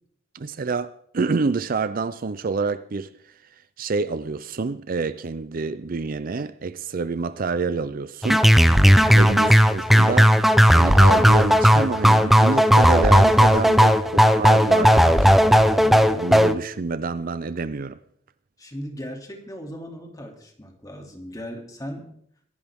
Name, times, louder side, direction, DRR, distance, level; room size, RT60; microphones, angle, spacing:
voice 1, 0.3-3.1 3.8-8.5 9.1-18.0, right 4 dB, 50° right, 0.5 m, -27 dB
sound 1, 8.2-16.5, equal, ahead, 0.6 m, -15 dB
voice 2, 18.6-22.1, equal, 20° left, 2.7 m, -37 dB
23.5 x 11.5 x 3.6 m
head